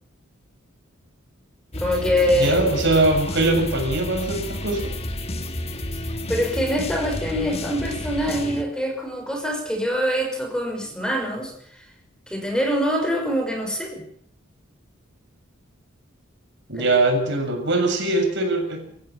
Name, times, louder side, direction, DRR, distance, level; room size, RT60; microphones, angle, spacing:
sound 1, 1.7-8.6, left 1 dB, 30° left, 1.7 m, -31 dB
voice 1, 1.8-2.6 6.3-11.5 12.3-14.0 16.8-16.9, equal, 5° left, 3 dB, 5.9 m, -24 dB
voice 2, 2.3-5.0 16.7-18.9, right 2 dB, 65° right, 3 dB, 7.3 m, -22 dB
27.5 x 15.5 x 7.2 m, 0.66 s
head